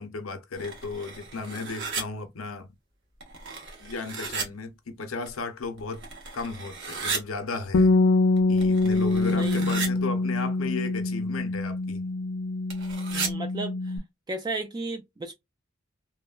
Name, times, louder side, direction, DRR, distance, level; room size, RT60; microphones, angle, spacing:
voice 1, 0.0-2.7 3.8-6.1 6.3-7.9 8.5-12.0, left 4 dB, 90° left, 0.7 m, -35 dB
sound 1, 0.6-2.0 3.2-4.5 5.3-5.4 5.8-7.2 8.4-9.9 12.7-13.3, right 4 dB, 60° right, 1.1 m, -35 dB
Bass guitar, 7.7-14.0, left 2 dB, 60° left, 0.4 m, -24 dB
voice 2, 9.3-9.7 13.1-14.0 14.3-15.3, right 2 dB, 20° right, 0.3 m, -34 dB
3.1 x 2.1 x 2.3 m
head